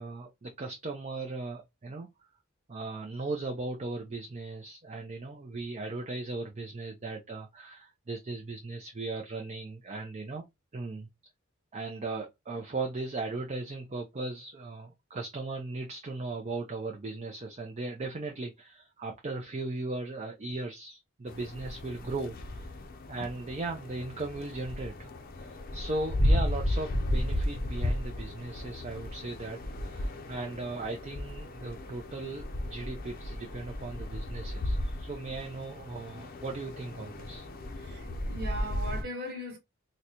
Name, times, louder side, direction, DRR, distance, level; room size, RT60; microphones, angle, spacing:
voice 1, 0.0-2.1 2.7-10.4 10.7-11.1 11.7-22.7 23.1-37.5, right 3 dB, 35° right, 0.5 m, -37 dB
sound 1, 21.3-39.0, left 1 dB, 45° left, 0.5 m, -34 dB
voice 2, 37.8-39.6, equal, 50° right, 1.3 m, -39 dB
3.8 x 2.1 x 2.9 m
head